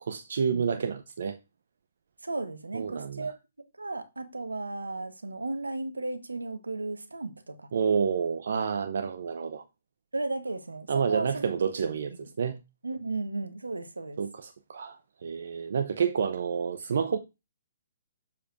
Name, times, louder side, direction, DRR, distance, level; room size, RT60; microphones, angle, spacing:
voice 1, 0.0-1.4 2.7-3.3 7.7-9.6 10.9-12.6 14.2-17.2, right 6 dB, 60° right, 0.7 m, -29 dB
voice 2, 2.2-3.3 3.8-7.7 10.1-11.9 12.2-12.3 12.8-14.2, right 2 dB, 85° right, 1.2 m, -35 dB
7.2 x 6.9 x 2.6 m
figure-of-eight pair, 130°, 0 cm